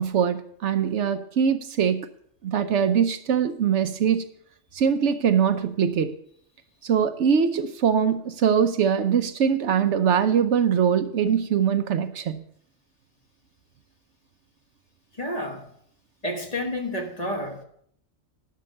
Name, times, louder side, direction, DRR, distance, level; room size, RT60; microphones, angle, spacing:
voice 1, 0.0-2.1 2.4-4.2 4.7-6.1 6.8-12.4, right 7 dB, 70° right, 10 dB, 1.0 m, -22 dB
voice 2, 15.1-15.7 16.2-17.6, left 1 dB, 30° left, 3 dB, 1.3 m, -30 dB
11.5 x 6.0 x 6.5 m, 0.65 s
omnidirectional pair, 1.3 m